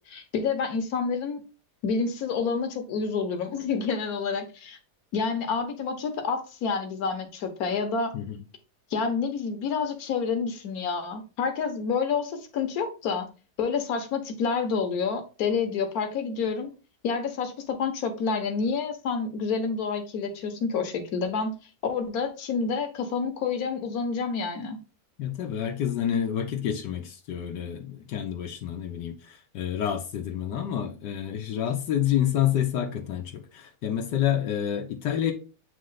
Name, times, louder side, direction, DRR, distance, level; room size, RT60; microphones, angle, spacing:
voice 1, 0.1-1.4 1.8-4.8 5.1-8.1 8.9-13.3 13.6-16.7 17.0-21.6 21.8-24.8, left 5 dB, 60° left, 1.6 m, -28 dB
voice 2, 25.2-35.3, left 10 dB, 85° left, 1.5 m, -28 dB
8.4 x 3.2 x 3.9 m
omnidirectional pair, 1.8 m